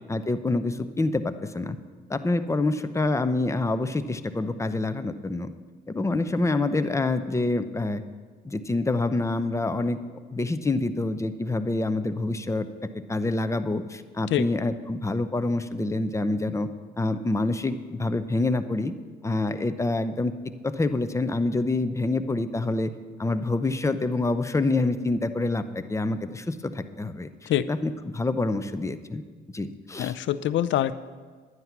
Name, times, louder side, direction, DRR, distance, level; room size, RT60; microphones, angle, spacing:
voice 1, 0.1-1.8 2.1-5.5 5.9-8.0 8.4-10.0 10.3-12.7 13.1-16.7 17.0-18.9 19.2-20.3 20.6-22.9 23.2-29.2 29.5-30.1, left 2 dB, 15° left, 10 dB, 0.7 m, -26 dB
voice 2, 30.0-30.9, left 12 dB, 70° left, 15 dB, 0.5 m, -24 dB
11.0 x 9.5 x 5.9 m, 1.5 s
cardioid pair, 90°, 20 cm